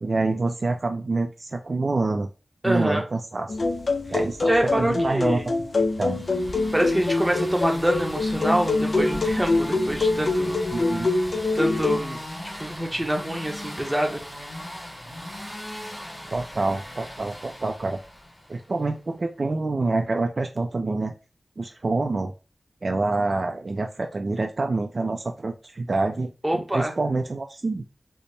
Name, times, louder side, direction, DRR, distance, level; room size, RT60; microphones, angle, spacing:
voice 1, 0.0-2.3 2.6-3.6 4.1-5.4 6.0-6.2 10.7-11.1 16.3-18.0 18.5-21.1 21.6-22.3 22.8-27.8, right 3 dB, 50° right, 4 dB, 0.4 m, -26 dB
voice 2, 2.6-3.0 4.5-5.4 6.7-10.6 11.5-12.2 12.6-14.2 26.4-26.9, right 1 dB, 10° right, 2 dB, 0.8 m, -25 dB
sound 1, 3.5-12.0, left 3 dB, 55° left, 0.5 m, -25 dB
sound 2, 5.8-18.7, left 1 dB, 15° left, 1.8 m, -37 dB
4.0 x 2.0 x 3.3 m, 0.31 s
wide cardioid pair, 100°, 0 cm